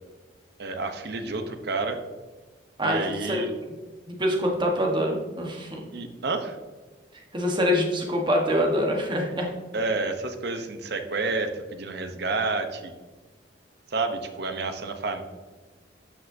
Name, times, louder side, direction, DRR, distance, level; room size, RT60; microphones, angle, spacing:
voice 1, 0.6-2.0 2.8-3.5 5.9-6.6 9.7-12.9 13.9-15.2, right 3 dB, 60° right, 6 dB, 0.9 m, -29 dB
voice 2, 2.8-3.4 4.1-5.8 7.3-9.5, equal, 25° right, 1 dB, 1.3 m, -25 dB
12.0 x 5.5 x 2.7 m, 1.3 s
head